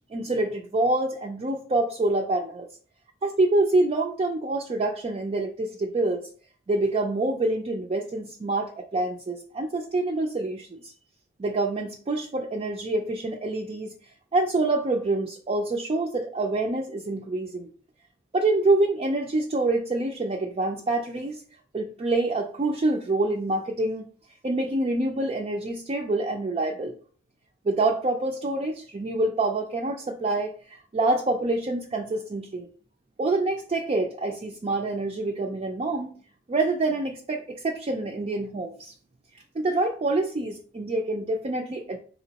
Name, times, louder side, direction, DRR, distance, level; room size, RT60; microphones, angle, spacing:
voice 1, 0.1-2.7 3.2-6.2 6.7-10.9 11.4-13.9 14.3-17.7 18.3-21.4 21.7-24.1 24.4-26.9 27.6-32.7 33.2-36.1 36.5-38.9 39.5-42.0, right 2 dB, 30° right, 2 dB, 0.4 m, -26 dB
4.2 x 2.9 x 2.8 m, 0.42 s
head